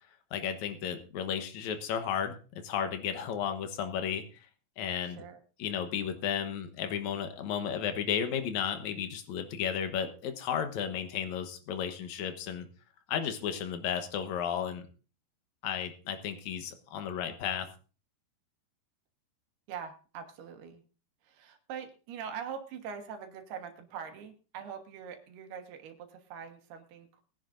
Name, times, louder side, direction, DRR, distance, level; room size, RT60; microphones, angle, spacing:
voice 1, 0.3-2.4 2.6-4.2 4.8-5.2 5.6-12.7 13.1-14.8 15.6-17.7, left 8 dB, 65° left, 8 dB, 1.9 m, -33 dB
voice 2, 5.0-5.4 19.7-20.8 21.2-27.2, right 7 dB, 75° right, 5 dB, 3.2 m, -43 dB
21.5 x 10.5 x 2.6 m, 0.36 s
omnidirectional pair, 4.7 m